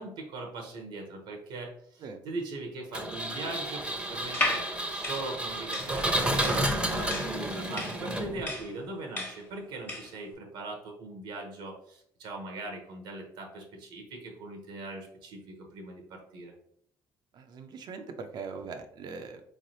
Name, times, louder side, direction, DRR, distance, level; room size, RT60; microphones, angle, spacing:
voice 1, 0.0-16.5, right 2 dB, 85° right, 2 dB, 0.9 m, -40 dB
Engine, 2.9-8.6, right 1 dB, 10° right, 0.7 m, -31 dB
sound 1, 4.2-10.2, left 1 dB, 25° left, 1.1 m, -35 dB
voice 2, 17.3-19.4, right 5 dB, 60° right, 6 dB, 0.5 m, -41 dB
3.5 x 3.2 x 2.7 m, 0.68 s
cardioid pair, 85°, 8 cm